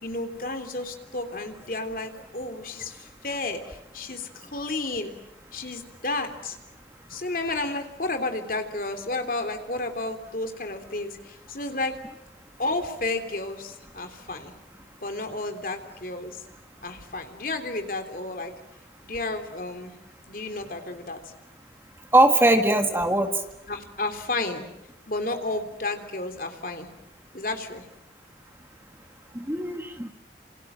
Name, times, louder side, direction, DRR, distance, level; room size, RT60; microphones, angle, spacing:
voice 1, 0.0-5.1 5.5-6.6 7.1-12.0 12.6-14.5 15.0-16.4 16.8-18.5 19.0-20.0 20.3-21.2 23.7-24.7 25.1-26.9 27.3-27.8, left 2 dB, 50° left, 6 dB, 3.4 m, -32 dB
voice 2, 22.1-23.3 29.3-30.1, right 1 dB, 15° right, 6 dB, 1.8 m, -20 dB
28.5 x 28.0 x 7.6 m, 0.83 s
head